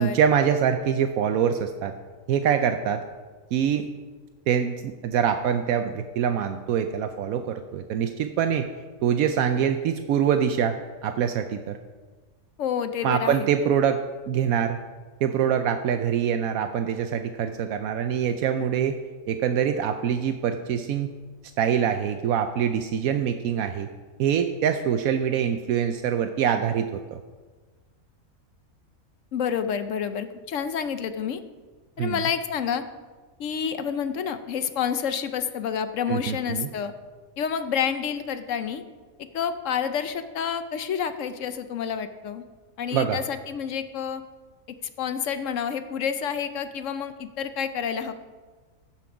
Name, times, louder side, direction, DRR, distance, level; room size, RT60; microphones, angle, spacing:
voice 1, 0.0-1.9 2.3-3.0 3.5-3.9 4.5-8.7 9.0-11.8 13.0-14.8 15.2-19.0 19.3-21.1 21.6-23.9 24.2-27.2 32.0-32.2 36.1-36.7 42.9-43.2, right 8 dB, 80° right, 7 dB, 1.0 m, -24 dB
voice 2, 12.6-13.5 29.3-31.4 32.0-32.8 33.4-36.9 37.4-38.8 39.2-42.4 42.8-44.2 45.0-48.1, left 7 dB, 65° left, 10 dB, 0.9 m, -29 dB
15.0 x 6.0 x 5.0 m, 1.4 s
omnidirectional pair, 1.5 m